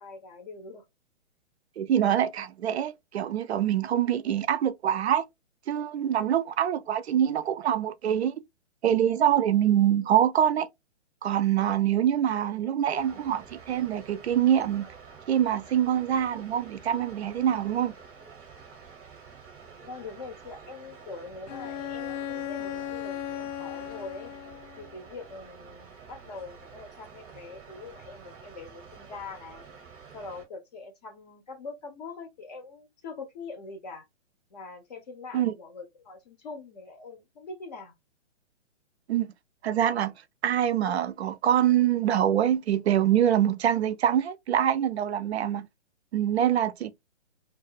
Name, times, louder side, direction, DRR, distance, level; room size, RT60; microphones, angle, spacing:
voice 1, 0.0-0.8 19.8-24.3 24.8-29.7 30.1-34.1 34.5-37.9, left 4 dB, 35° left, 0.6 m, -43 dB
voice 2, 1.8-5.2 5.7-8.4 8.8-10.7 11.2-14.9 15.3-17.9 35.3-35.5 39.1-39.3 39.6-40.1 40.4-45.7 46.1-46.9, right 10 dB, 60° right, 0.5 m, -25 dB
sound 1, 12.9-30.5, right 6 dB, 20° right, 0.7 m, -49 dB
Bowed string instrument, 21.5-25.0, left 10 dB, 85° left, 0.5 m, -36 dB
2.3 x 2.3 x 2.4 m
hypercardioid pair, 145°, 36 cm